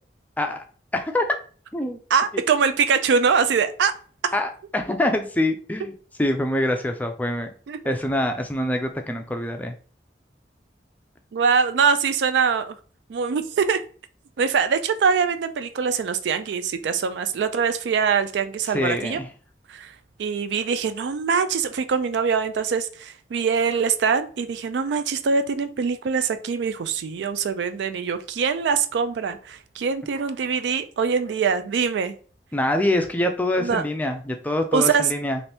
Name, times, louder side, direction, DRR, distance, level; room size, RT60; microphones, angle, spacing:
voice 1, 0.9-1.3 1.7-2.0 4.3-5.9 6.2-7.5 7.9-9.7 18.7-19.3 32.5-35.4, left 1 dB, 10° left, 0.4 m, -25 dB
voice 2, 2.1-3.9 4.2-4.3 7.7-7.8 11.3-12.8 13.1-13.8 14.4-19.2 19.7-19.9 20.2-32.2 33.6-33.9 34.7-35.1, right 6 dB, 75° right, 0.3 m, -23 dB
2.8 x 2.5 x 3.3 m
head